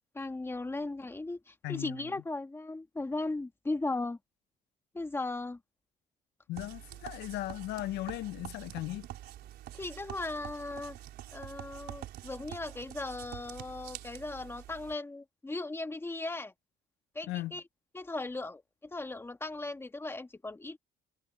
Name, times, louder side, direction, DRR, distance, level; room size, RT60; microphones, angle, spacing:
voice 1, 0.1-4.2 4.9-5.6 9.7-11.0 11.3-16.5 17.1-17.6 17.9-20.8, left 2 dB, 15° left, 2.1 m, -37 dB
voice 2, 1.6-2.0 6.5-9.1 17.3-17.5, left 16 dB, 85° left, 0.6 m, -37 dB
sound 1, 6.5-14.9, right 13 dB, 75° right, 4.2 m, -46 dB
cardioid pair, 110°, 17 cm